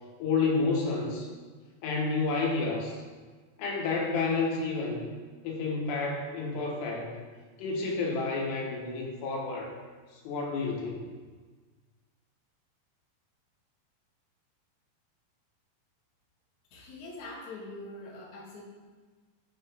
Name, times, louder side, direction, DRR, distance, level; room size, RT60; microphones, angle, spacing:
voice 1, 0.2-1.3 1.8-3.0 3.6-5.1 5.4-7.2 7.6-9.7 10.1-11.0, left 4 dB, 90° left, -1 dB, 3.3 m, -30 dB
voice 2, 16.7-18.6, left 2 dB, 65° left, -3 dB, 2.0 m, -43 dB
8.2 x 3.9 x 4.2 m, 1.5 s
omnidirectional pair, 4.7 m